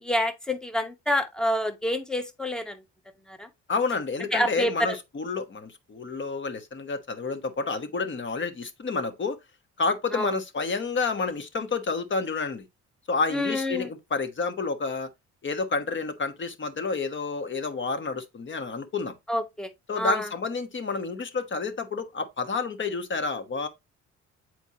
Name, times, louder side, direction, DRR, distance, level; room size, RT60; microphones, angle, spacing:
voice 1, 0.0-2.8 3.3-3.5 4.3-5.0 10.1-10.4 13.3-13.9 19.3-19.7 20.0-20.3, left 1 dB, ahead, 1.1 m, -27 dB
voice 2, 3.7-9.4 9.8-12.7 13.1-15.1 15.4-19.1 19.9-23.7, left 4 dB, 40° left, 1.3 m, -29 dB
8.1 x 4.5 x 2.8 m
cardioid pair, 90°, 30 cm